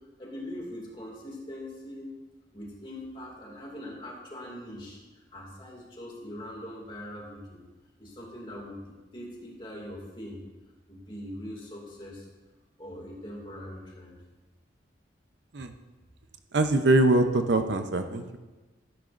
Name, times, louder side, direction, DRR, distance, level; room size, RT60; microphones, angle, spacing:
voice 1, 0.2-2.1 2.5-7.6 8.0-8.8 9.1-10.4 10.9-12.2 12.8-14.1, left 1 dB, 25° left, -2 dB, 2.3 m, -41 dB
voice 2, 16.5-18.4, right 2 dB, 70° right, 7 dB, 0.7 m, -23 dB
13.0 x 11.0 x 2.5 m, 1.2 s
head